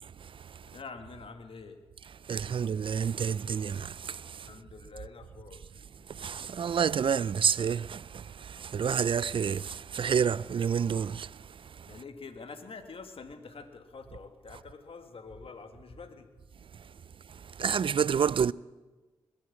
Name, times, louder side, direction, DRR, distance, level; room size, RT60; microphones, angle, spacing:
voice 1, 0.6-1.8 4.4-5.7 11.8-16.3, left 4 dB, 60° left, 1.8 m, -46 dB
voice 2, 2.3-4.2 6.2-11.3 17.6-18.5, right 7 dB, 50° right, 0.4 m, -28 dB
20.5 x 8.0 x 8.4 m
supercardioid pair, 45°, 11 cm